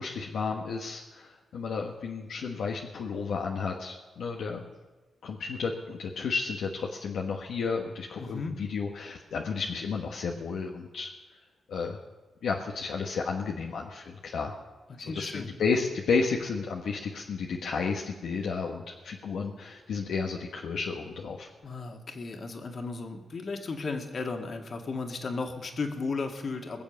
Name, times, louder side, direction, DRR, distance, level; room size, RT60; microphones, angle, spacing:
voice 1, 0.0-4.7 5.2-11.1 11.7-12.0 12.4-14.5 15.0-21.5, left 5 dB, 80° left, 0 dB, 1.2 m, -32 dB
voice 2, 8.2-8.6 14.9-15.5 21.6-26.8, left 4 dB, 55° left, 3 dB, 2.0 m, -35 dB
21.5 x 7.2 x 7.1 m, 1.2 s
cardioid pair, 60°, 0 cm